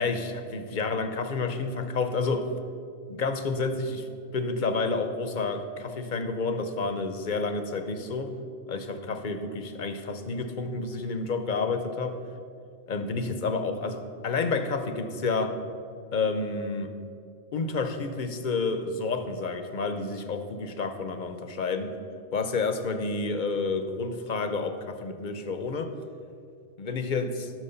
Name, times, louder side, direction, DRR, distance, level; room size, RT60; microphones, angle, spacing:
voice 1, 0.0-2.5 3.1-4.1 4.3-8.3 8.7-12.2 12.9-15.6 16.1-16.9 17.5-21.9 22.3-25.9 26.8-27.5, left 4 dB, 45° left, 8 dB, 0.7 m, -30 dB
12.5 x 6.3 x 5.6 m, 2.5 s
omnidirectional pair, 1.4 m